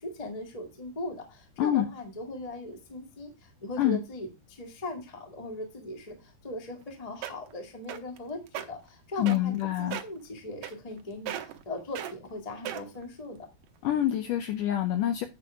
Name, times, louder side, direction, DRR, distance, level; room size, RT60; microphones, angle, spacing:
voice 1, 0.0-13.5, left 2 dB, 20° left, 3 dB, 0.9 m, -39 dB
sound 1, 6.8-6.9 7.2-7.5 7.9-8.2 8.5-8.7 9.3-9.6 9.9-10.2 10.6-11.0 11.3-11.6 12.0-12.1 12.7-13.0 13.6-13.7, right 11 dB, 75° right, 2.1 m, -36 dB
voice 2, 9.2-10.0 13.8-15.3, left 12 dB, 80° left, 7 dB, 2.0 m, -26 dB
9.6 x 5.0 x 4.7 m, 0.25 s
omnidirectional pair, 4.5 m